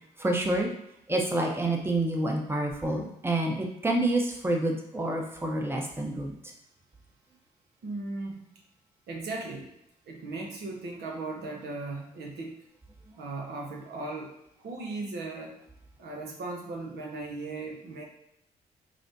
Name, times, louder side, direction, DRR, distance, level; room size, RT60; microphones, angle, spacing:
voice 1, 0.2-0.7 1.1-6.3, right 1 dB, 15° right, 1 dB, 0.8 m, -28 dB
voice 2, 7.8-8.5 9.1-9.7 10.1-12.6 13.2-15.6 16.0-18.0, right 3 dB, 65° right, 1 dB, 0.8 m, -37 dB
4.8 x 2.1 x 2.7 m, 0.80 s
hypercardioid pair, 45°, 18 cm